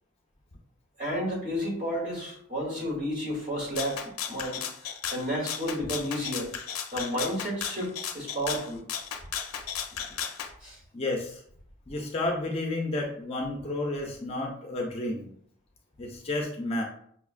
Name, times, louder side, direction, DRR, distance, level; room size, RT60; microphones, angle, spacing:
voice 1, 1.0-6.5 6.9-8.8 10.6-10.8, equal, 35° right, -3 dB, 1.2 m, -32 dB
Rattle (instrument), 3.8-10.5, left 8 dB, 85° left, 0.4 m, -35 dB
voice 2, 10.9-11.4 11.9-15.3 16.0-16.8, left 2 dB, 30° left, 0 dB, 0.4 m, -31 dB
5.6 x 2.3 x 2.4 m, 0.64 s
head